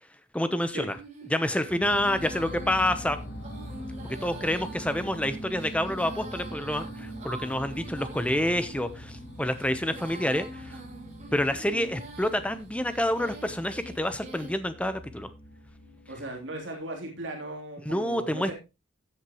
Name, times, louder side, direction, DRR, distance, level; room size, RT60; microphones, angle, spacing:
voice 1, 0.3-0.9 1.3-3.2 4.2-10.8 11.3-15.3 17.9-18.5, left 1 dB, 5° left, 11 dB, 0.8 m, -28 dB
Female singing, 0.9-14.6, right 2 dB, 35° right, 2.5 m, -45 dB
sound 1, 1.7-17.1, equal, 70° left, 5.3 m, -42 dB
voice 2, 16.1-18.5, right 2 dB, 70° right, 0 dB, 3.3 m, -37 dB
14.5 x 8.0 x 3.0 m, 0.27 s
head